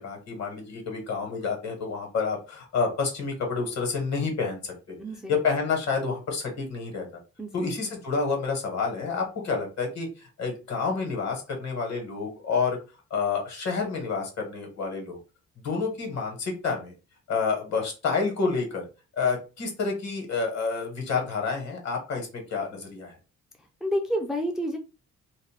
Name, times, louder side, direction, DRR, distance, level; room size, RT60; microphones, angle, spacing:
voice 1, 0.0-5.0 5.3-7.1 7.5-12.8 13.1-15.2 15.6-16.9 17.3-18.9 19.2-23.1, left 4 dB, 60° left, 2 dB, 1.3 m, -29 dB
voice 2, 5.0-5.3 7.4-7.5 23.8-24.8, equal, ahead, 2 dB, 0.4 m, -28 dB
2.5 x 2.1 x 3.2 m, 0.31 s
cardioid pair, 90°, 30 cm